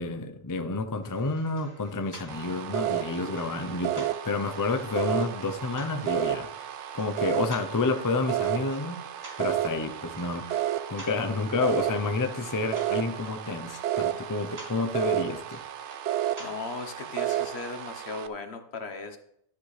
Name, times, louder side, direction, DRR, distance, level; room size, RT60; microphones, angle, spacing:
voice 1, 0.0-6.7 6.9-9.0 9.4-15.6, left 3 dB, 25° left, 7 dB, 0.5 m, -30 dB
sound 1, 1.0-18.0, right 1 dB, 60° right, 3.4 m, -51 dB
sound 2, 2.3-18.3, right 12 dB, 90° right, 0.9 m, -32 dB
voice 2, 16.4-19.2, left 4 dB, 65° left, 6 dB, 1.4 m, -37 dB
12.0 x 9.3 x 3.3 m, 0.73 s
omnidirectional pair, 1.2 m